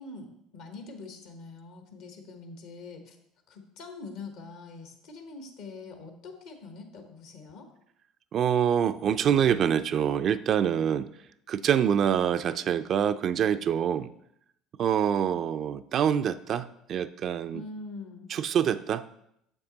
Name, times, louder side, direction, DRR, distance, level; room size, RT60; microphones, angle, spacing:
voice 1, 0.0-3.2 3.5-7.7 17.5-18.3, left 3 dB, 75° left, 5 dB, 1.1 m, -44 dB
voice 2, 8.3-11.1 11.5-14.1 14.8-17.6 18.3-19.1, right 8 dB, 50° right, 11 dB, 0.3 m, -25 dB
6.6 x 6.0 x 3.9 m, 0.76 s
supercardioid pair, 85°, 0 cm